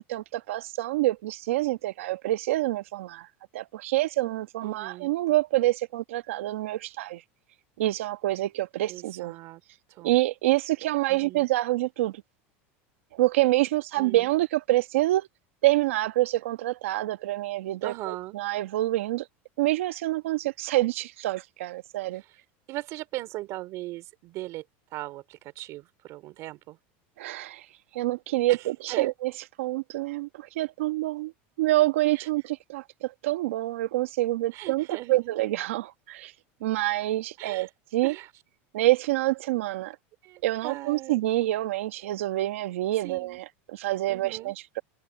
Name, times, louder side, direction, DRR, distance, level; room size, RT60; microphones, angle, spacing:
voice 1, 0.0-3.3 3.5-7.2 7.8-9.3 10.0-12.2 13.1-15.3 15.6-19.3 19.6-22.2 27.2-27.7 27.9-29.3 29.6-31.3 31.6-36.3 36.6-38.2 38.7-40.0 40.4-44.8, right 17 dB, 90° right, 1.3 m, -27 dB
voice 2, 4.6-5.1 8.9-9.6 9.9-10.1 11.1-11.5 14.0-14.3 17.8-18.4 22.1-22.4 22.7-24.6 24.9-26.8 28.5-29.1 32.1-32.3 34.5-35.3 37.4-37.7 38.0-38.3 40.2-41.2 43.0-43.4 44.1-44.5, right 18 dB, 50° right, 3.0 m, -39 dB
supercardioid pair, 140°, 7 cm